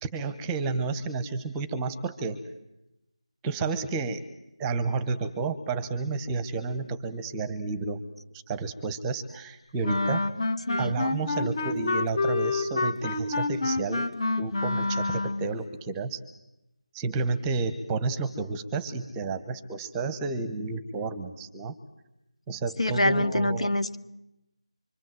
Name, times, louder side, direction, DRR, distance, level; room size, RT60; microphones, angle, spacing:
voice 1, 0.0-2.4 3.4-4.2 4.6-8.0 8.5-10.2 10.8-14.1 14.4-16.2 16.9-21.7 22.5-23.7, right 4 dB, 10° right, 14 dB, 1.0 m, -31 dB
Wind instrument woodwind instrument, 9.8-15.5, left 2 dB, 45° left, 1.9 m, -28 dB
voice 2, 10.7-11.0 22.8-24.0, left 1 dB, 80° left, 8 dB, 2.0 m, -25 dB
25.0 x 24.5 x 7.8 m, 0.90 s
figure-of-eight pair, 165°, 3 cm